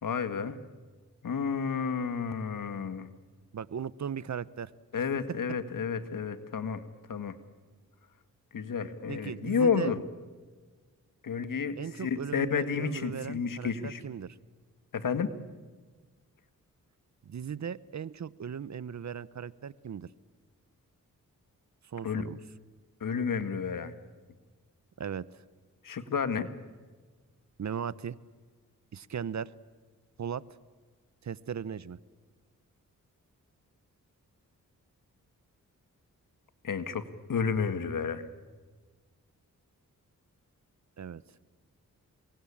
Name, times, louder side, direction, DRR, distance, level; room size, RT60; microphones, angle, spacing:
voice 1, 0.0-0.6 1.2-3.1 4.9-6.8 7.1-7.4 8.5-10.0 11.2-14.0 14.9-15.3 22.0-22.3 23.0-23.9 25.8-26.5 36.6-37.0 37.3-38.3, left 6 dB, 70° left, 11 dB, 1.9 m, -31 dB
voice 2, 3.5-4.7 9.1-9.9 11.8-14.4 17.3-20.1 21.8-22.4 25.0-25.3 27.6-28.2 28.9-29.5 30.2-30.4 31.2-32.0 41.0-41.2, right 7 dB, 55° right, 19 dB, 0.9 m, -37 dB
27.0 x 23.5 x 8.7 m, 1.4 s
cardioid pair, 65°, 34 cm